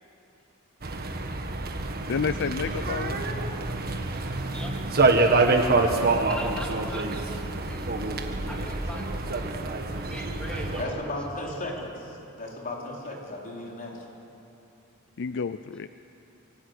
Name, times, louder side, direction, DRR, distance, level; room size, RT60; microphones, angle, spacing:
sound 1, 0.8-10.8, right 3 dB, 45° right, 1.6 m, -26 dB
voice 1, 2.1-3.2 15.2-15.9, left 5 dB, 60° left, 12 dB, 0.5 m, -30 dB
voice 2, 6.3-8.2 8.5-9.1 9.9-11.8, equal, 5° left, -2 dB, 3.0 m, -41 dB
voice 3, 10.8-11.9 12.4-14.1, left 2 dB, 40° left, -2 dB, 4.1 m, -35 dB
23.5 x 17.5 x 8.3 m, 2.8 s
head